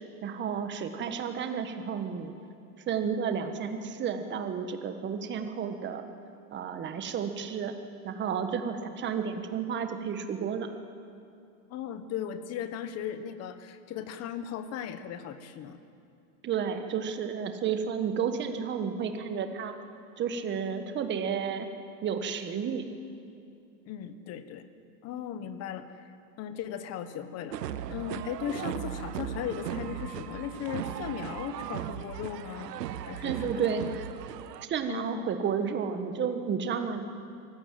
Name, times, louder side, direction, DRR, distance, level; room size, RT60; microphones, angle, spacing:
voice 1, 0.2-2.3 2.9-6.0 6.5-7.8 8.0-10.7 16.4-19.8 20.2-21.7 22.0-22.8 33.2-33.8 34.6-37.0, right 7 dB, 25° right, 7 dB, 1.5 m, -31 dB
voice 2, 11.7-15.8 23.9-24.6 25.0-25.9 26.4-27.6 27.9-32.7 33.0-33.6 34.9-35.3, left 9 dB, 30° left, 11 dB, 1.2 m, -37 dB
sound 1, 27.5-34.7, right 10 dB, 90° right, 1.0 m, -37 dB
23.5 x 16.0 x 7.7 m, 2.6 s
supercardioid pair, 135°, 47 cm